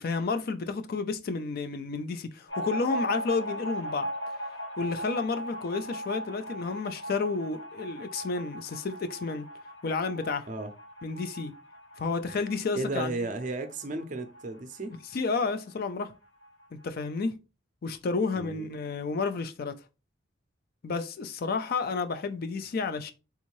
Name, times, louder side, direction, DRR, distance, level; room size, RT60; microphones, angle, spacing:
voice 1, 0.0-4.1 4.8-9.5 9.8-10.5 11.0-11.5 12.0-13.1 15.1-16.1 16.8-17.4 17.8-19.8 20.8-23.1, left 4 dB, 50° left, 0.4 m, -31 dB
sound 1, 2.5-15.6 15.9-16.0 16.3-17.0, equal, 70° left, 2.0 m, -38 dB
voice 2, 12.8-14.9 18.3-18.7, right 2 dB, 40° right, 0.5 m, -34 dB
3.5 x 2.6 x 3.0 m
head